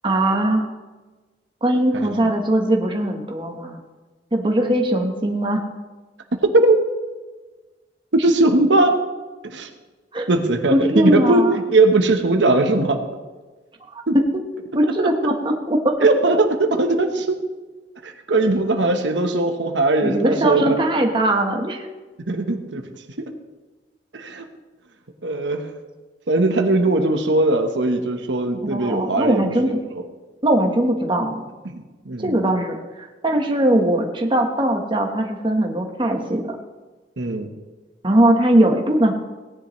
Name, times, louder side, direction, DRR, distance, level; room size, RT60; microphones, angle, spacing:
voice 1, 0.0-0.7 1.6-3.8 4.3-5.6 10.1-10.3 10.7-11.6 13.9-14.3 14.7-16.1 20.0-21.9 28.6-29.8 30.4-31.5 32.2-36.6 38.0-39.1, right 1 dB, 30° right, 2 dB, 1.2 m, -20 dB
voice 2, 8.1-9.0 9.4-9.7 10.3-11.4 11.7-13.0 14.1-14.2 15.0-15.1 16.0-17.4 18.0-20.8 22.3-22.8 24.1-24.5 25.2-25.7 26.3-29.4 31.6-32.4 37.2-37.5, right 2 dB, 85° right, 5 dB, 1.1 m, -19 dB
18.0 x 10.5 x 3.2 m, 1.3 s
head